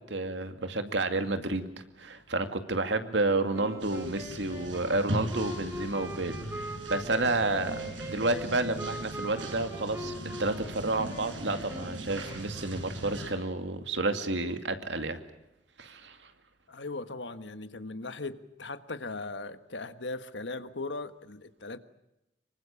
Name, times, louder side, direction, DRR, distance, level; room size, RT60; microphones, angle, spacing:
voice 1, 0.1-15.2 15.8-16.3, right 2 dB, 70° right, 8 dB, 2.4 m, -31 dB
sound 1, 3.5-12.7, equal, 15° right, 3.9 m, -41 dB
sound 2, 3.8-13.3, right 1 dB, 90° right, 7.5 m, -40 dB
voice 2, 16.7-21.8, left 3 dB, 70° left, 11 dB, 1.5 m, -38 dB
25.5 x 23.5 x 7.1 m, 0.90 s
head